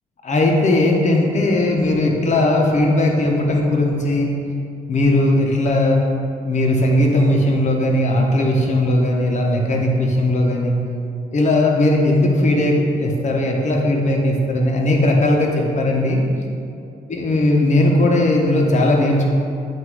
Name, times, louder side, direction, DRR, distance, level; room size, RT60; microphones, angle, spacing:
voice 1, 0.2-4.3 4.9-6.0 6.4-10.8 11.3-16.2 17.1-19.3, left 1 dB, 50° left, 0 dB, 1.0 m, -18 dB
8.0 x 2.7 x 4.8 m, 2.6 s
cardioid pair, 85°, 16 cm